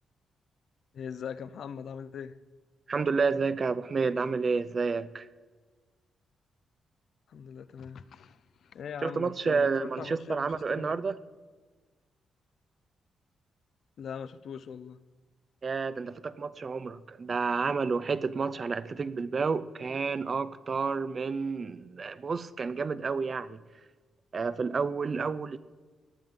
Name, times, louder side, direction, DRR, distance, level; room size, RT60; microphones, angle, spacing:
voice 1, 0.9-2.4 7.3-10.9 14.0-15.0, left 7 dB, 70° left, 15 dB, 0.5 m, -41 dB
voice 2, 2.9-5.3 9.0-11.2 15.6-23.6 24.3-25.6, right 4 dB, 45° right, 15 dB, 0.5 m, -30 dB
18.0 x 10.5 x 3.8 m, 1.4 s
cardioid pair, 80°, 0 cm